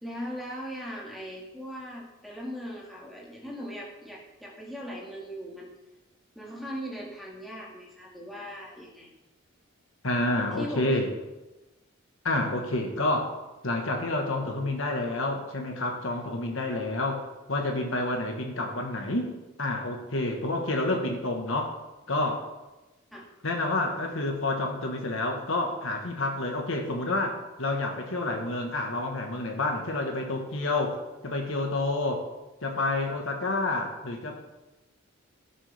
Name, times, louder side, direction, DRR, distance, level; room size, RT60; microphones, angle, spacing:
voice 1, 0.0-5.7 6.4-9.1 10.6-11.0 23.1-23.3, equal, ahead, -4 dB, 1.9 m, -39 dB
voice 2, 10.0-11.1 12.2-13.3 13.6-19.3 19.6-21.7 22.1-22.5 23.4-30.9 31.2-32.2 32.6-34.4, left 2 dB, 65° left, 2 dB, 1.4 m, -29 dB
17.0 x 6.6 x 3.5 m, 1.1 s
head